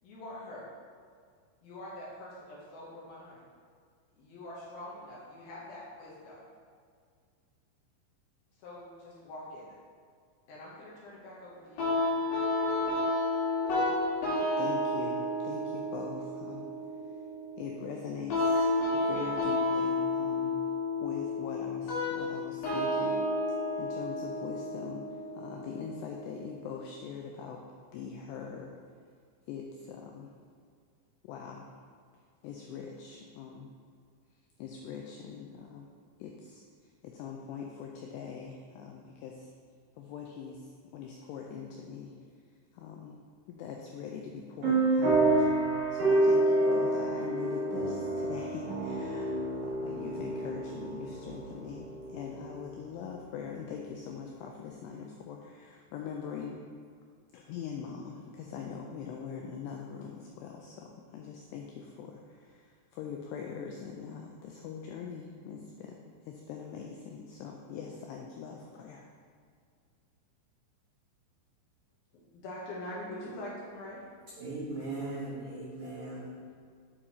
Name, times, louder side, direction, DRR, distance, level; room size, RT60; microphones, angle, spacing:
voice 1, 0.0-0.7 1.6-3.4 4.2-6.5 8.6-9.8 10.5-12.1 72.3-74.0, left 1 dB, 70° left, -6 dB, 2.4 m, -44 dB
sound 1, 11.8-26.7, left 2 dB, 55° left, 2.7 m, -31 dB
voice 2, 14.6-16.7 17.6-20.6 21.0-23.2 23.8-27.6 27.9-28.8 29.5-30.3 31.2-31.7 32.4-33.7 34.6-35.9 36.2-36.6 37.0-39.5 40.0-42.1 42.7-43.2 43.5-45.3 45.9-56.6 57.3-69.1, left 6 dB, 90° left, 1 dB, 2.4 m, -42 dB
sound 2, 44.6-52.7, right 2 dB, 65° right, 1.4 m, -28 dB
voice 3, 74.4-76.5, right 2 dB, 80° right, -8 dB, 1.6 m, -39 dB
8.6 x 4.6 x 4.3 m, 2.1 s
omnidirectional pair, 5.4 m